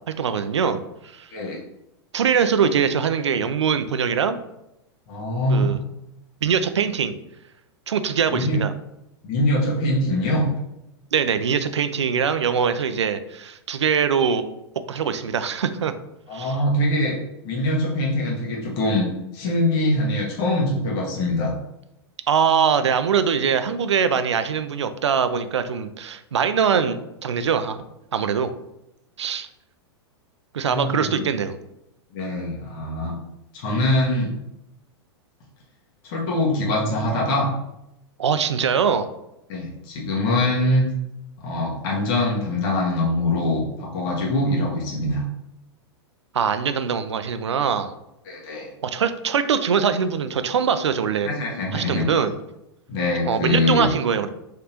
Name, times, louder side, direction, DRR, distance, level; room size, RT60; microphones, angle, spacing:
voice 1, 0.2-0.8 1.1-1.3 2.1-4.4 5.5-5.8 6.4-7.1 7.9-8.7 11.1-14.4 14.9-15.9 16.3-16.5 22.3-27.8 28.1-28.5 29.2-29.5 30.5-31.6 38.2-39.1 46.3-47.9 48.8-51.3 51.7-52.4 53.3-54.3, right 7 dB, 90° right, 11 dB, 0.4 m, -22 dB
voice 2, 5.1-5.8 8.3-8.6 9.2-10.5 16.3-17.2 17.4-19.0 19.3-21.5 30.7-31.2 32.1-33.1 33.5-34.4 36.0-37.5 39.5-40.8 41.4-45.2 48.2-48.7 51.2-52.1 52.9-53.9, left 1 dB, 55° left, -3 dB, 1.3 m, -23 dB
3.7 x 3.5 x 2.9 m, 0.85 s
hypercardioid pair, 110°, 14 cm